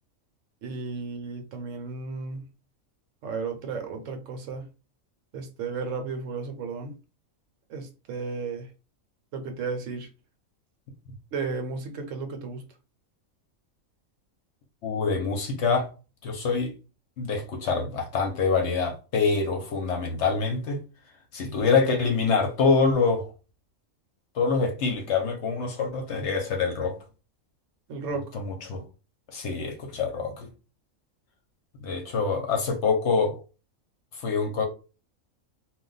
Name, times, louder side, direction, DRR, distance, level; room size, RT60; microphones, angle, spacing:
voice 1, 0.6-2.5 3.2-4.7 5.3-7.0 7.7-8.7 9.3-10.1 11.3-12.7 27.9-28.3, right 4 dB, 70° right, 0.9 m, -34 dB
voice 2, 14.8-15.9 16.2-16.7 17.2-20.8 21.3-23.3 24.3-27.0 28.3-28.8 29.3-30.5 31.8-33.4 34.1-34.6, left 4 dB, 65° left, 0.8 m, -25 dB
2.2 x 2.2 x 3.8 m
omnidirectional pair, 1.4 m